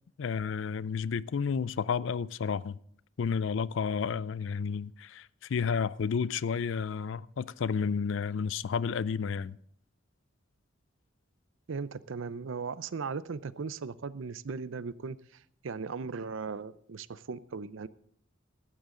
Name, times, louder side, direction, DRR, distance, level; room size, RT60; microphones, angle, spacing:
voice 1, 0.2-2.8 3.2-9.6, left 6 dB, 65° left, 0.4 m, -31 dB
voice 2, 11.7-17.9, right 5 dB, 70° right, 0.5 m, -38 dB
15.5 x 12.0 x 3.8 m
head